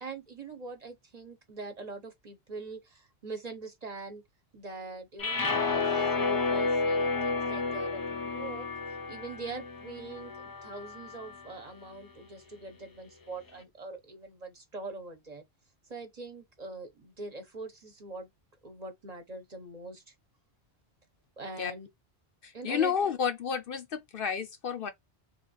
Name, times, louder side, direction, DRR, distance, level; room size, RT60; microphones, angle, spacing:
voice 1, 0.0-4.2 4.5-8.7 9.1-15.4 15.9-18.3 18.6-20.1 21.4-21.9 22.5-22.9, right 3 dB, 40° right, 0.9 m, -43 dB
sound 1, 5.2-11.5, left 4 dB, 35° left, 0.3 m, -31 dB
voice 2, 22.4-24.9, left 7 dB, 65° left, 0.7 m, -31 dB
3.3 x 2.6 x 4.0 m
omnidirectional pair, 1.1 m